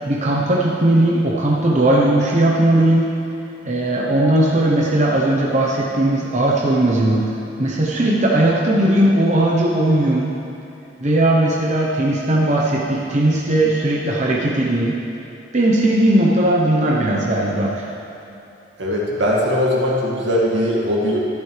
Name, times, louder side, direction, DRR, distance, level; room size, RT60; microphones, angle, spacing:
voice 1, 0.1-3.1 3.6-7.3 7.6-10.3 11.0-15.0 15.5-17.8, right 1 dB, 40° right, -4 dB, 0.9 m, -17 dB
voice 2, 18.8-21.2, equal, 85° right, -4 dB, 2.2 m, -20 dB
13.0 x 11.0 x 3.3 m, 2.9 s
head